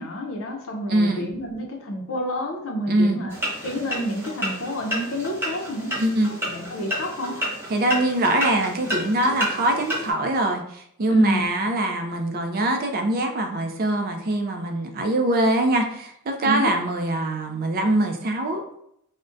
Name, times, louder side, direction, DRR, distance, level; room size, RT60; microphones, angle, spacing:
voice 1, 0.0-5.9 6.4-7.4 11.1-11.5 16.4-16.7, equal, 65° left, 1 dB, 0.6 m, -29 dB
voice 2, 0.9-1.3 2.9-3.2 6.0-6.3 7.7-18.7, right 1 dB, 40° right, 4 dB, 0.4 m, -23 dB
sound 1, 3.3-10.1, equal, 10° right, 0.7 m, -31 dB
3.6 x 2.1 x 2.5 m, 0.73 s
head